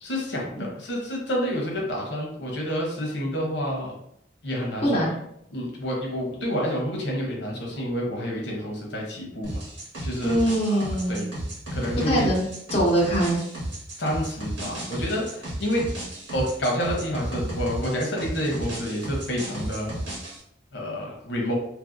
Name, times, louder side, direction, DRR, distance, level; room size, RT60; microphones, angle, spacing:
voice 1, 0.0-3.9 4.4-5.0 5.5-9.6 10.0-10.4 10.7-11.2 11.7-12.3 14.0-15.8 16.3-19.9 20.7-21.6, equal, 65° left, -1 dB, 0.8 m, -29 dB
voice 2, 4.8-5.1 10.2-11.2 12.0-13.4, right 1 dB, 35° left, -4 dB, 0.7 m, -23 dB
sound 1, 9.4-20.4, right 1 dB, 90° right, 1.3 m, -33 dB
2.9 x 2.6 x 2.5 m, 0.73 s
head